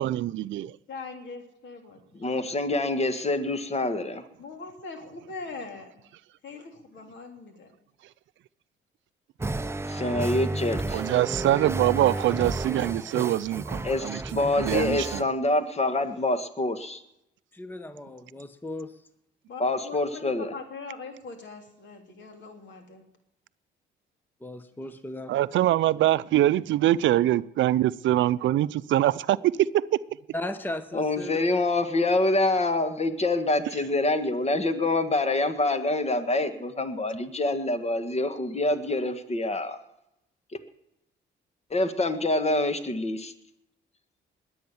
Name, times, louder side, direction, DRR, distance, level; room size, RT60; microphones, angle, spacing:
voice 1, 0.0-0.7 10.9-15.2 25.3-29.8, right 14 dB, 75° right, 0.5 m, -24 dB
voice 2, 0.9-2.0 4.4-6.1 6.4-7.8 19.5-23.1, left 4 dB, 65° left, 3.3 m, -42 dB
voice 3, 2.2-4.2 9.9-11.0 13.8-17.0 19.6-20.5 30.9-39.8 41.7-43.3, left 2 dB, 30° left, 1.7 m, -26 dB
sound 1, 9.4-15.2, right 2 dB, 15° right, 0.6 m, -32 dB
voice 4, 17.5-19.0 24.4-25.3 30.3-31.4, left 1 dB, 10° left, 1.0 m, -36 dB
21.0 x 8.8 x 7.1 m
cardioid pair, 90°, 20 cm